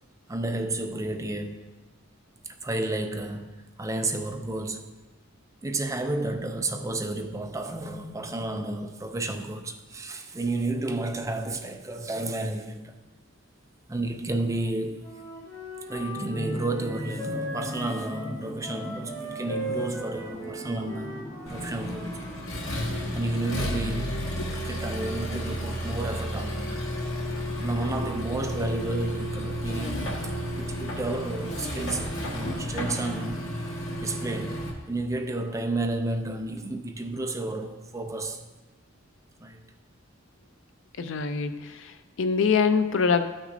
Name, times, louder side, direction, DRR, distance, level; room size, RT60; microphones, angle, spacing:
voice 1, 0.3-1.6 2.5-4.9 5.6-12.9 13.9-15.0 15.9-21.2 21.5-22.3 23.1-26.8 27.6-30.1 30.6-33.5 34.0-38.4 39.4-39.6, right 2 dB, 15° right, 0.4 m, -31 dB
Wind instrument woodwind instrument, 15.0-22.4, right 1 dB, 20° left, 1.9 m, -38 dB
sound 1, 16.2-24.0, equal, 40° left, 1.1 m, -39 dB
Accelerating revving vroom, 21.5-34.7, equal, 85° left, 1.8 m, -32 dB
voice 2, 41.0-43.2, left 5 dB, 65° left, 0.5 m, -25 dB
12.5 x 6.1 x 2.6 m
head